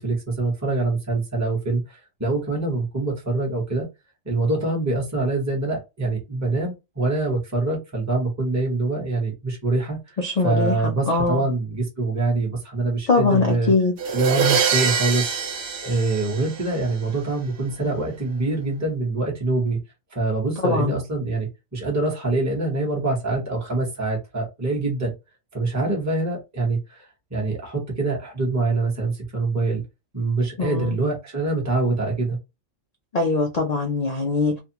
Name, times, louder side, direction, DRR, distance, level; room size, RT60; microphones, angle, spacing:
voice 1, 0.0-3.9 4.2-13.7 14.1-15.3 15.8-19.8 20.1-25.1 25.5-29.8 30.1-32.4, right 3 dB, 15° right, 0.9 m, -25 dB
voice 2, 10.2-10.7 11.1-11.4 13.1-13.9 20.6-21.0 30.6-30.9 33.1-34.6, left 3 dB, 85° left, 0.3 m, -21 dB
sound 1, 14.0-16.9, right 6 dB, 75° right, 1.0 m, -24 dB
2.6 x 2.2 x 2.8 m
omnidirectional pair, 1.3 m